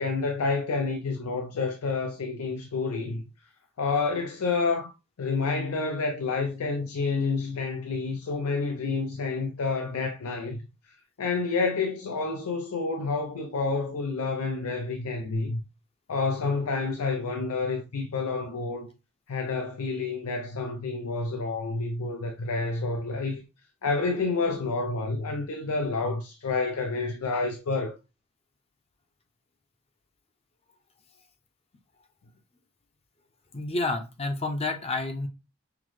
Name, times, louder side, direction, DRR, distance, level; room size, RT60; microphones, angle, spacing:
voice 1, 0.0-3.2 3.8-4.9 5.2-10.6 11.2-15.6 16.1-18.9 19.3-23.4 23.8-27.9, left 4 dB, 85° left, 0.5 m, -29 dB
voice 2, 33.5-35.3, left 2 dB, 30° left, 0.5 m, -29 dB
5.7 x 2.0 x 3.1 m
head